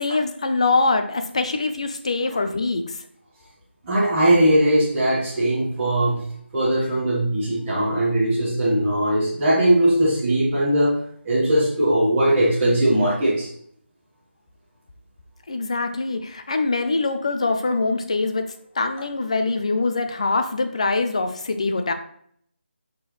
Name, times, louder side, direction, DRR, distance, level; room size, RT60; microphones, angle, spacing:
voice 1, 0.0-3.0 15.5-21.9, left 3 dB, 30° left, 7 dB, 0.6 m, -23 dB
voice 2, 3.8-6.2 6.5-11.0 11.2-13.5, right 1 dB, 10° right, -11 dB, 1.3 m, -19 dB
6.1 x 6.0 x 3.1 m, 0.64 s
figure-of-eight pair, 175°, 7 cm